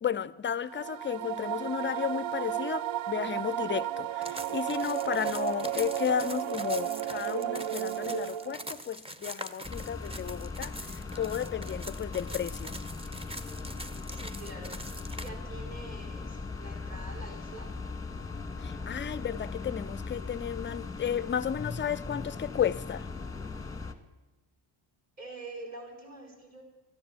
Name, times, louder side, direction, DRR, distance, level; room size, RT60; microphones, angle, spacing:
voice 1, 0.0-12.7 18.6-23.1, left 8 dB, 25° left, 0.3 m, -33 dB
sound 1, 0.6-8.8, right 12 dB, 70° right, 0.6 m, -33 dB
sound 2, 4.2-15.3, right 1 dB, 10° right, 0.7 m, -43 dB
sound 3, 9.6-23.9, left 4 dB, 5° left, 1.1 m, -39 dB
voice 2, 14.1-17.7 25.2-26.6, right 2 dB, 35° right, 4.5 m, -46 dB
13.0 x 10.0 x 7.4 m
cardioid pair, 115°, 48 cm